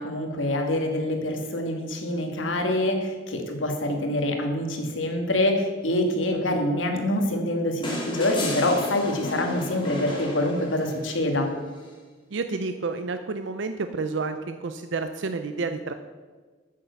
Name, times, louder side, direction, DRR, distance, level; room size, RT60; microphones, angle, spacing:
voice 1, 0.0-11.5, left 1 dB, 85° left, 3 dB, 1.8 m, -25 dB
sound 1, 7.8-11.2 12.7-12.8, left 1 dB, 25° left, 2.4 m, -33 dB
voice 2, 12.3-15.9, right 4 dB, 70° right, 8 dB, 0.5 m, -30 dB
8.8 x 7.5 x 6.9 m, 1.4 s
head